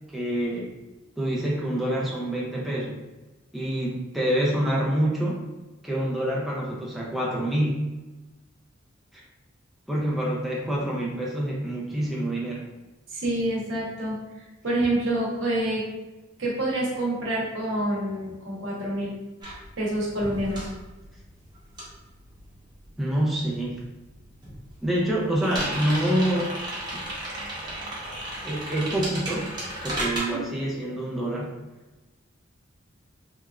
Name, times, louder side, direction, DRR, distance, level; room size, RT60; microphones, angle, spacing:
voice 1, 0.1-0.7 1.2-3.0 3.5-5.4 5.8-7.9 9.1-9.2 9.9-12.6 23.0-23.8 24.8-26.5 26.9-27.0 28.4-29.5 29.8-31.6, right 1 dB, ahead, -5 dB, 0.3 m, -26 dB
voice 2, 13.1-14.2 14.6-15.8 16.4-19.1 19.8-20.7 30.3-30.4, right 1 dB, 70° right, -4 dB, 0.8 m, -27 dB
sound 1, 19.4-23.2 23.5-30.2, right 1 dB, 20° right, 0.7 m, -34 dB
2.9 x 2.3 x 2.3 m, 1.1 s
head